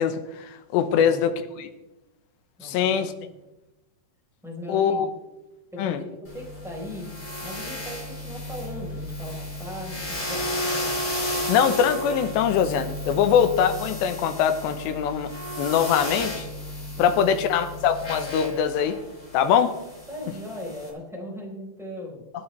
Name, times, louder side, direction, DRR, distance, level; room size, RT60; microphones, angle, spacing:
voice 1, 0.0-1.7 2.6-3.1 4.7-5.1 5.8-6.0 11.5-15.3 15.6-16.5 17.0-19.0 19.3-19.7, left 8 dB, 85° left, 9 dB, 3.2 m, -22 dB
voice 2, 2.6-3.1 3.3-3.4 4.4-5.1 5.7-10.7 17.0-17.4 20.1-22.2, left 1 dB, ahead, -3 dB, 3.8 m, -38 dB
sound 1, 6.3-20.9, left 1 dB, 25° left, 4.7 m, -33 dB
25.5 x 9.8 x 3.4 m, 1.0 s
omnidirectional pair, 5.0 m